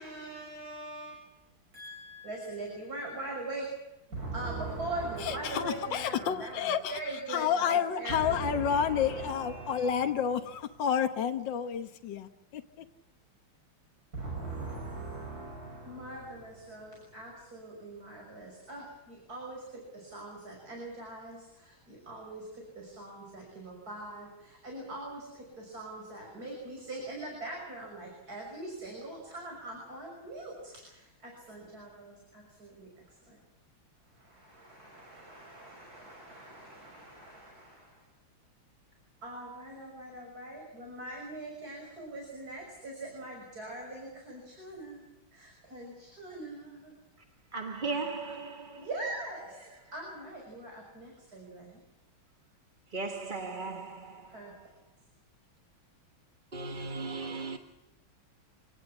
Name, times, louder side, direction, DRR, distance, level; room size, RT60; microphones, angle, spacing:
voice 1, 0.0-1.3 1.7-3.7 4.1-10.1 14.1-33.4 34.1-38.1 39.2-47.0 48.7-51.8 54.3-54.6, right 2 dB, 45° right, 6.7 m, -42 dB
voice 2, 5.2-7.0 7.3-12.9, left 8 dB, 65° left, 1.7 m, -30 dB
voice 3, 47.5-48.9 52.9-54.3 56.5-57.6, right 3 dB, 30° right, 1.3 m, -36 dB
26.5 x 19.0 x 7.2 m
omnidirectional pair, 2.2 m